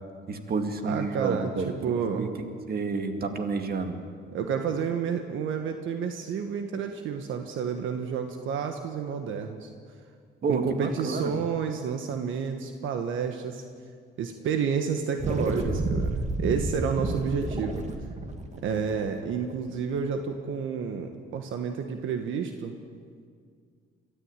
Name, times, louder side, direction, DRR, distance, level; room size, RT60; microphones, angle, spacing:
voice 1, 0.3-1.7 2.1-2.3 2.7-4.0 10.4-11.3, right 4 dB, 50° right, 6 dB, 2.3 m, -29 dB
voice 2, 0.8-2.3 4.3-9.7 10.5-13.6 14.2-17.9 18.6-22.7, right 6 dB, 80° right, 6 dB, 1.4 m, -30 dB
sound 1, 15.2-19.9, right 2 dB, 35° right, 2.1 m, -31 dB
22.5 x 14.0 x 9.0 m, 2.1 s
cardioid pair, 90°, 20 cm